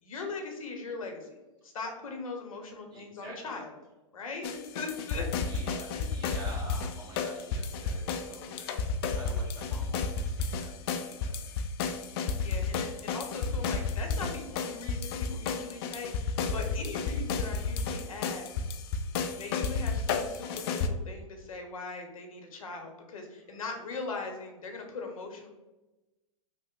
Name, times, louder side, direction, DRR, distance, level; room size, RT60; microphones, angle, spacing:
voice 1, 0.0-3.8 4.1-4.5 4.7-5.3 5.9-6.1 12.4-18.6 19.4-25.5, left 4 dB, 75° left, 3 dB, 0.8 m, -40 dB
voice 2, 2.9-3.6 5.5-8.8 9.1-11.6, right 2 dB, 25° right, -4 dB, 1.1 m, -47 dB
sound 1, 4.4-20.9, left 5 dB, 45° left, 0.4 m, -32 dB
3.2 x 2.0 x 3.6 m, 1.1 s
hypercardioid pair, 120°, 18 cm